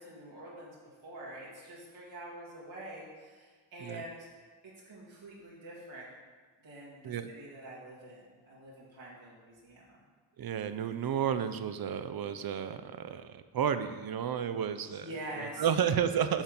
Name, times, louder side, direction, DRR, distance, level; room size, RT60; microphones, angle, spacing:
voice 1, 0.0-4.3 4.9-6.1 6.6-10.0 14.9-15.6, right 1 dB, 85° right, -6 dB, 1.9 m, -46 dB
voice 2, 10.4-15.1 15.4-16.4, right 8 dB, 55° right, 11 dB, 0.5 m, -32 dB
7.1 x 3.7 x 5.8 m, 1.4 s
cardioid pair, 60°, 45 cm